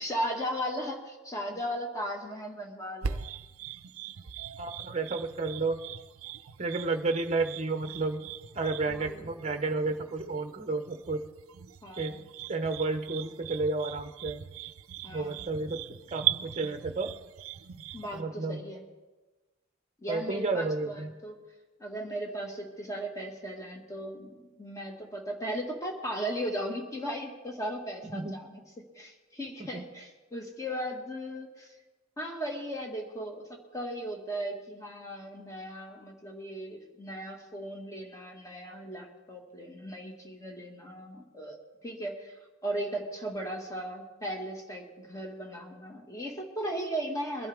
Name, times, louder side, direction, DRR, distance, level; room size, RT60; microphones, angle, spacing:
voice 1, 0.0-3.2 8.9-9.2 11.8-12.2 15.0-15.5 17.9-18.8 20.0-21.4 21.8-28.6 29.0-31.7 32.2-41.6 41.8-47.5, equal, 15° left, 1 dB, 1.8 m, -37 dB
sound 1, 3.0-18.2, right 10 dB, 75° right, 0.5 m, -39 dB
voice 2, 4.6-5.8 6.6-8.2 8.5-11.2 12.0-12.2 12.5-14.4 15.1-17.1 18.1-18.6 20.1-21.1 28.0-28.4 29.7-29.9, right 3 dB, 30° right, 7 dB, 0.9 m, -31 dB
22.5 x 11.5 x 3.5 m, 1.2 s
head